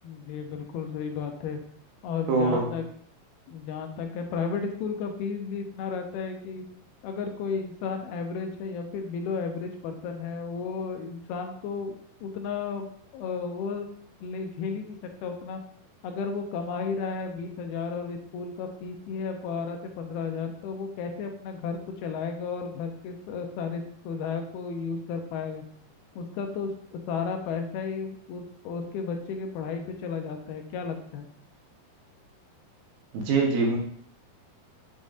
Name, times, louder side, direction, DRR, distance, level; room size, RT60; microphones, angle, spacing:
voice 1, 0.0-1.6 2.0-2.8 3.5-6.6 7.0-12.0 12.2-12.9 13.1-13.9 14.2-15.6 16.0-25.6 26.2-31.3, left 5 dB, 90° left, 4 dB, 2.8 m, -33 dB
voice 2, 2.3-2.7 33.1-33.8, right 4 dB, 75° right, -1 dB, 2.9 m, -23 dB
7.7 x 5.5 x 2.6 m, 0.65 s
omnidirectional pair, 4.3 m